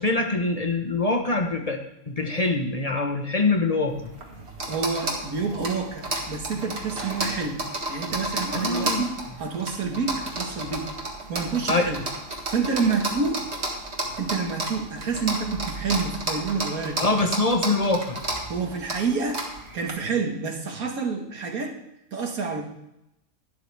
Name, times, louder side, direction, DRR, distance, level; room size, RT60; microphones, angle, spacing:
voice 1, 0.0-1.8 2.1-4.0 8.5-9.0 11.7-11.9 17.0-18.2, left 2 dB, 25° left, 3 dB, 1.1 m, -24 dB
sound 1, 3.9-19.9, right 2 dB, 50° right, 2.0 m, -32 dB
voice 2, 4.7-7.6 7.9-9.1 9.4-10.9 11.3-12.0 12.5-13.4 14.2-17.1 18.5-19.4 19.7-21.8 22.1-22.6, right 4 dB, 80° right, 2 dB, 2.0 m, -28 dB
12.0 x 11.5 x 3.5 m, 0.85 s
omnidirectional pair, 1.5 m